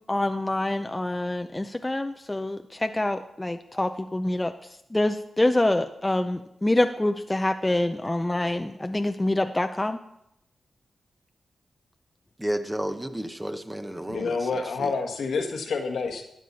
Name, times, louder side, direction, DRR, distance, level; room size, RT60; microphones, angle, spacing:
voice 1, 0.1-4.5 4.9-10.0, left 1 dB, 20° left, 7 dB, 0.6 m, -26 dB
voice 2, 12.4-14.9, right 1 dB, 10° right, 7 dB, 1.1 m, -32 dB
voice 3, 14.1-16.2, left 4 dB, 80° left, 4 dB, 1.4 m, -28 dB
12.5 x 8.4 x 4.2 m, 0.79 s
cardioid pair, 45°, 0 cm